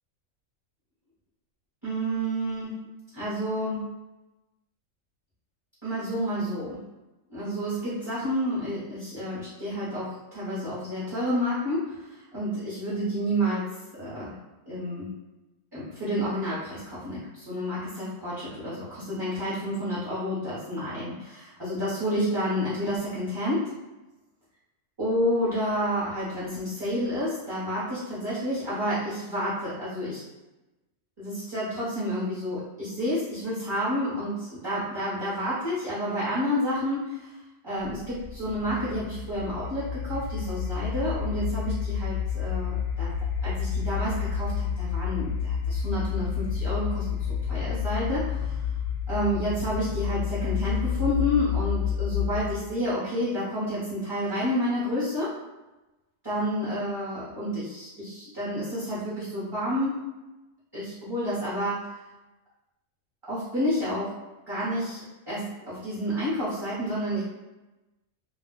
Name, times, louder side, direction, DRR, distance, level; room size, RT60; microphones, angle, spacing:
voice 1, 1.8-2.7 3.1-3.9 5.8-6.8 7.3-14.3 14.7-15.1 15.7-23.7 25.0-30.2 31.2-37.3 37.6-43.1 43.4-48.6 49.1-55.3 56.2-60.1 60.7-61.9 63.3-64.1 64.5-65.0 65.3-67.2, equal, 20° right, -11 dB, 0.9 m, -30 dB
sound 1, 37.8-52.7, left 7 dB, 60° left, 0.7 m, -30 dB
2.4 x 2.3 x 3.7 m, 1.0 s
omnidirectional pair, 1.4 m